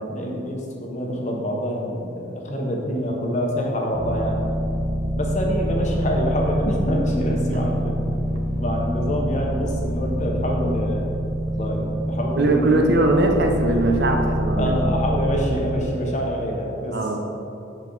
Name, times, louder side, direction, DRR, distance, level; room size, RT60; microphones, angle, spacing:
voice 1, 0.1-4.5 5.1-8.0 8.6-11.1 11.5-12.8 14.6-17.0, equal, 35° left, -1 dB, 0.9 m, -26 dB
sound 1, 3.9-15.4, equal, 35° right, 1.5 m, -26 dB
voice 2, 7.4-7.8 12.4-14.8 16.9-17.2, right 2 dB, 55° right, 3 dB, 0.7 m, -20 dB
8.3 x 4.5 x 3.9 m, 2.9 s
head